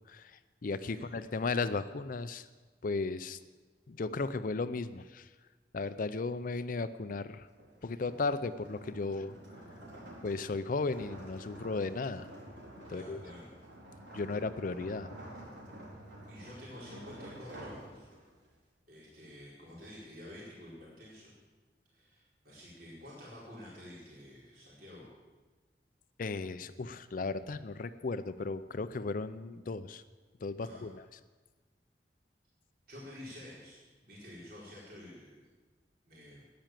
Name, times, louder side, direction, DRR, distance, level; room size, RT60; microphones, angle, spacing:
voice 1, 0.1-2.5 2.8-3.4 3.9-5.3 5.7-7.5 7.8-9.3 10.2-12.3 12.9-13.2 14.1-15.1 26.2-30.0 30.4-31.1, left 3 dB, 50° left, 12 dB, 0.5 m, -35 dB
sound 1, 7.5-18.5, right 1 dB, 80° right, 4.5 m, -49 dB
voice 2, 12.9-13.5 16.3-18.1 18.9-21.3 21.9-25.1 30.6-30.8 32.9-35.4 36.1-36.4, left 1 dB, 55° right, -6 dB, 4.7 m, -50 dB
14.0 x 10.5 x 7.5 m, 1.3 s
head